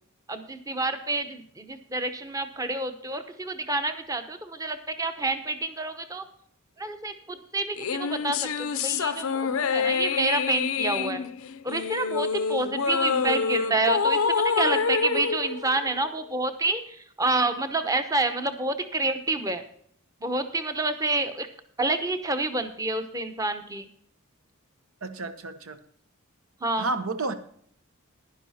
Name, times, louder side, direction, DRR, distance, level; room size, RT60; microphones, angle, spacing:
voice 1, 0.3-6.2 6.8-11.2 11.6-19.6 20.2-21.5 21.8-23.9 26.6-26.9, right 2 dB, 15° right, 9 dB, 0.9 m, -28 dB
sound 1, 7.8-16.4, left 5 dB, 75° left, 0.6 m, -27 dB
voice 2, 25.0-25.8 26.8-27.3, right 3 dB, 70° right, 10 dB, 1.2 m, -30 dB
11.0 x 11.0 x 4.2 m, 0.64 s
head